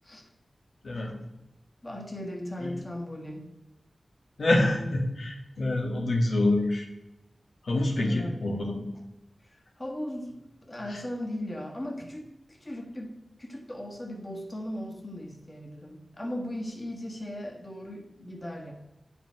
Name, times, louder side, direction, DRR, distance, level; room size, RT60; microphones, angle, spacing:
voice 1, 0.8-1.2 2.6-2.8 4.4-6.9 7.6-8.9 10.9-11.0, left 1 dB, 80° left, 1 dB, 1.4 m, -26 dB
voice 2, 1.8-3.5 8.0-8.5 9.4-18.7, left 1 dB, 25° left, 1 dB, 1.6 m, -38 dB
9.6 x 5.4 x 4.7 m, 0.95 s
wide cardioid pair, 65°, 0 cm